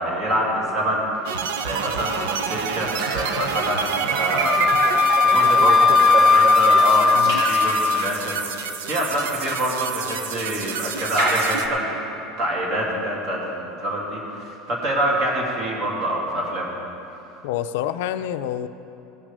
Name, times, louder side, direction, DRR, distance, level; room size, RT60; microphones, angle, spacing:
voice 1, 0.0-4.6 5.2-12.0 12.4-16.7, right 1 dB, 45° right, -2 dB, 2.8 m, -26 dB
sound 1, 1.3-11.7, right 7 dB, 85° right, 0.7 m, -28 dB
Raindrop / Drip, 3.0-4.3 7.2-8.4 11.2-12.9, right 2 dB, 65° right, 2.7 m, -32 dB
Wind instrument woodwind instrument, 4.4-8.1, left 4 dB, 5° left, 0.3 m, -17 dB
voice 2, 5.6-6.1 7.1-7.4 17.4-18.7, left 11 dB, 80° left, 11 dB, 0.5 m, -28 dB
17.5 x 6.2 x 6.7 m, 2.9 s
supercardioid pair, 155°, 0 cm